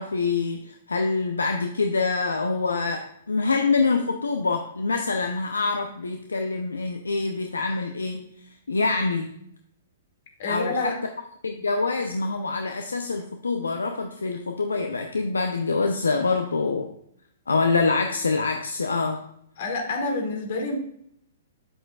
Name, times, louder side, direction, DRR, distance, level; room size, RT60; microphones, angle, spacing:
voice 1, 0.0-8.2 8.7-9.3 10.5-10.9 11.4-16.9 17.5-19.2, left 4 dB, 80° left, 5 dB, 0.7 m, -25 dB
voice 2, 10.4-11.0 19.6-20.8, left 3 dB, 55° left, 1 dB, 2.3 m, -27 dB
8.9 x 7.7 x 2.4 m, 0.71 s
figure-of-eight pair, 115°, 0 cm